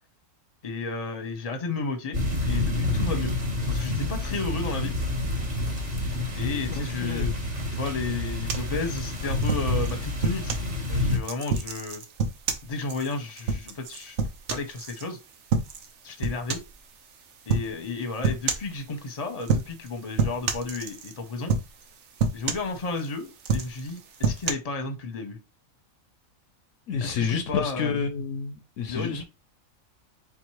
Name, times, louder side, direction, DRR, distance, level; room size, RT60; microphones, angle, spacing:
voice 1, 0.6-3.3 3.7-5.0 6.4-7.3 7.7-10.6 10.9-12.0 12.6-14.2 14.5-15.2 16.0-16.6 17.5-21.5 22.3-25.4 27.0-28.0 28.9-29.2, left 3 dB, 30° left, 0.9 m, -33 dB
sound 1, 2.1-11.2, left 2 dB, 30° right, 1.3 m, -28 dB
voice 2, 6.8-7.4 26.9-29.2, left 6 dB, 70° left, 0.9 m, -29 dB
sound 2, 8.5-10.7 11.2-15.0 15.5-15.9 16.2-16.8 17.5-17.7 18.2-18.7 19.4-19.9 20.2-21.2 21.5-21.9 22.2-23.1 23.4-24.5, right 4 dB, 60° right, 1.0 m, -28 dB
4.0 x 2.9 x 4.6 m
omnidirectional pair, 1.4 m